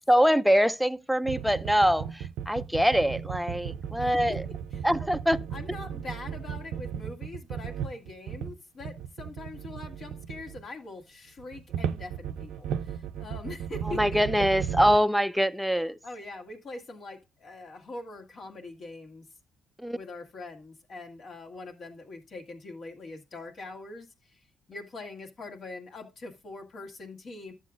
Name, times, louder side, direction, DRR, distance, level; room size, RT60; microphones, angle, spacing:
voice 1, 0.1-4.4 4.8-5.4 13.9-16.0 19.8-20.0, equal, ahead, 0.4 m, -24 dB
sound 1, 1.2-8.5 8.8-10.6 11.4-15.0, right 8 dB, 85° right, 0.5 m, -35 dB
voice 2, 4.0-4.4 4.7-4.9 5.5-14.4 16.0-19.3 19.9-27.5, left 2 dB, 55° left, 1.8 m, -43 dB
12.0 x 7.6 x 2.5 m
cardioid pair, 90°, 0 cm